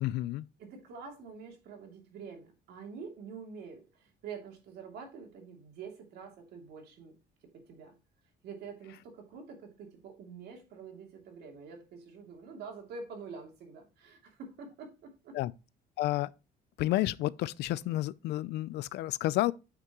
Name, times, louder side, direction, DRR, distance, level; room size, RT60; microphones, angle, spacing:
voice 1, 0.0-0.5 15.3-15.5 16.0-16.3 16.8-19.5, left 16 dB, 90° left, 0.5 m, -30 dB
voice 2, 0.6-7.2 7.4-8.0 8.4-15.4, right 5 dB, 75° right, 2.8 m, -47 dB
9.4 x 6.0 x 3.0 m
cardioid pair, 175°, 17 cm